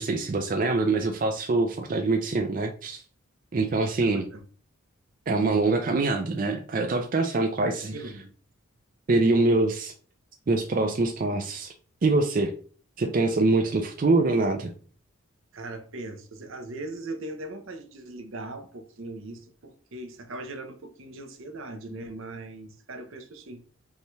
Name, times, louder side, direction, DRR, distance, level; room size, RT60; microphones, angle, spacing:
voice 1, 0.0-3.0 3.5-4.3 5.3-7.9 9.1-9.9 10.5-11.7 12.0-12.5 13.0-14.7, right 3 dB, 40° right, 0.4 m, -24 dB
voice 2, 4.0-4.4 7.8-8.3 15.5-23.6, right 2 dB, 70° right, 0.7 m, -39 dB
5.4 x 2.3 x 3.1 m
head